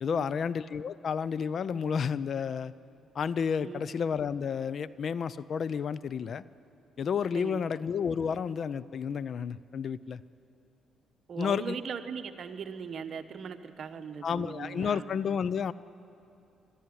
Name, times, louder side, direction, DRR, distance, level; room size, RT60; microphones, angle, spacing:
voice 1, 0.0-2.7 3.1-6.4 7.0-10.2 11.4-11.8 14.2-15.7, left 6 dB, 55° left, 18 dB, 0.5 m, -31 dB
voice 2, 11.3-15.0, right 6 dB, 55° right, 8 dB, 1.1 m, -39 dB
22.0 x 13.0 x 9.8 m, 2.7 s
cardioid pair, 90°, 0 cm